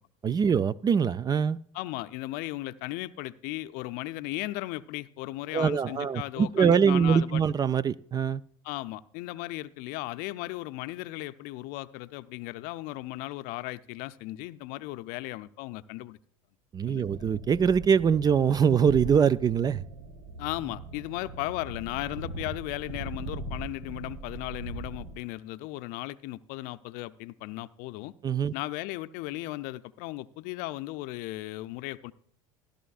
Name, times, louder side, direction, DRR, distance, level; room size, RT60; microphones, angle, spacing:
voice 1, 0.2-1.6 5.5-8.4 16.7-19.8 28.2-28.5, right 7 dB, 25° right, 0.3 m, -23 dB
voice 2, 1.7-7.4 8.6-16.2 16.9-17.1 20.4-28.1 28.5-32.1, left 18 dB, 60° left, 0.5 m, -36 dB
sound 1, 17.0-25.2, right 2 dB, 70° right, 2.5 m, -40 dB
15.5 x 11.5 x 2.4 m
hypercardioid pair, 85°, 17 cm